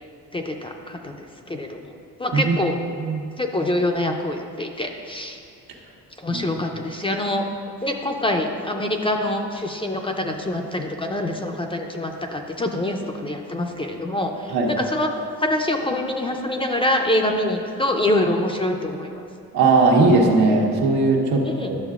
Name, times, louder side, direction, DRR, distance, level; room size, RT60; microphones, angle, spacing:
voice 1, 0.3-2.8 3.4-5.4 6.2-7.5 7.8-15.1 15.4-19.2 21.4-21.7, left 1 dB, 15° left, 2 dB, 0.3 m, -25 dB
voice 2, 2.3-2.7 3.0-3.2 6.3-6.4 14.5-14.7 19.5-21.8, right 3 dB, 85° right, -1 dB, 1.2 m, -18 dB
11.0 x 6.6 x 2.4 m, 2.5 s
cardioid pair, 115°, 37 cm